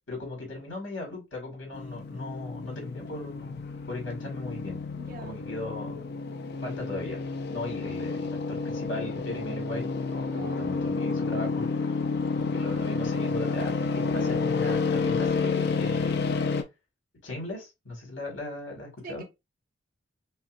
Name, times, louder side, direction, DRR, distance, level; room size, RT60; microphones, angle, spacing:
voice 1, 0.1-3.6 3.9-4.8 5.2-6.0 6.6-7.2 7.5-11.7 12.3-16.5 17.2-19.2, left 2 dB, 80° left, 2.2 m, -37 dB
sound 1, 1.7-16.6, left 4 dB, 55° left, 0.5 m, -30 dB
voice 2, 5.0-5.4 10.2-10.6 19.0-19.2, right 3 dB, 50° right, 0.9 m, -44 dB
5.4 x 2.2 x 2.5 m
head